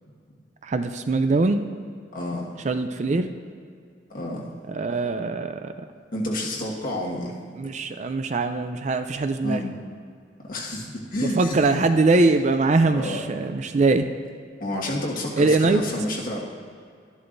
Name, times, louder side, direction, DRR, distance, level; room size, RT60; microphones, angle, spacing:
voice 1, 0.6-1.6 2.6-3.3 4.7-5.7 7.6-9.7 11.2-14.1 15.4-15.8, right 3 dB, 40° right, 8 dB, 0.4 m, -22 dB
voice 2, 2.1-2.5 4.1-4.4 6.1-7.3 9.4-9.8 10.4-11.8 12.9-13.2 14.6-16.4, left 1 dB, 50° left, -3 dB, 1.6 m, -29 dB
12.5 x 11.0 x 2.6 m, 2.2 s
head